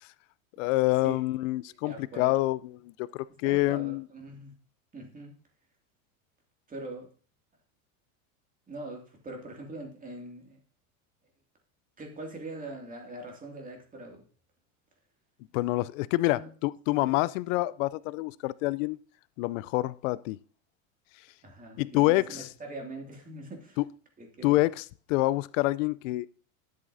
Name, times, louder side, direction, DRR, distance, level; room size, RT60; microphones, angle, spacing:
voice 1, 0.6-4.0 15.5-19.0 19.4-20.4 21.8-22.5 23.8-23.9 24.4-24.8 25.1-26.3, left 19 dB, 65° left, 0.5 m, -27 dB
voice 2, 1.7-2.3 3.4-4.5 4.9-5.4 6.7-7.1 8.7-10.6 12.0-14.2 16.2-16.5 16.9-17.1 21.4-23.8 24.2-24.6, right 2 dB, 20° right, 2.4 m, -42 dB
10.5 x 7.6 x 2.7 m
supercardioid pair, 115°, 42 cm